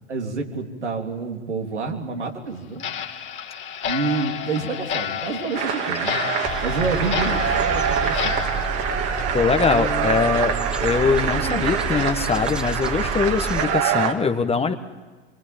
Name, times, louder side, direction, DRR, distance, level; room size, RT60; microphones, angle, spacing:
voice 1, 0.1-2.9 3.8-6.2 6.6-8.8 9.7-10.2 10.8-11.8, right 4 dB, 85° right, 2 dB, 3.5 m, -29 dB
Clock, 2.8-10.0 10.3-10.4 10.9-11.0 11.5-11.6 12.1-12.2 12.7-12.8 13.3-13.4, left 9 dB, 35° left, 2.6 m, -31 dB
sound 1, 5.5-14.1, right 8 dB, 45° right, 2.4 m, -25 dB
sound 2, 6.4-13.6, right 3 dB, 5° right, 2.0 m, -30 dB
voice 2, 9.3-14.7, left 5 dB, 15° left, 8 dB, 1.5 m, -22 dB
26.5 x 23.5 x 8.9 m, 1.3 s
hypercardioid pair, 85°, 34 cm